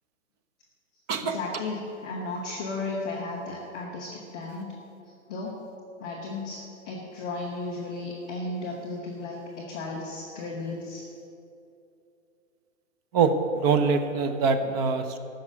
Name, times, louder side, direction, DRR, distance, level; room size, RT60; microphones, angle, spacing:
voice 1, 1.2-4.7 5.3-5.5 6.0-6.6 6.8-11.0, left 3 dB, 5° left, -8 dB, 0.3 m, -34 dB
voice 2, 13.1-15.2, right 5 dB, 30° right, 9 dB, 0.8 m, -24 dB
12.5 x 6.4 x 8.4 m, 2.7 s
hypercardioid pair, 130°, 41 cm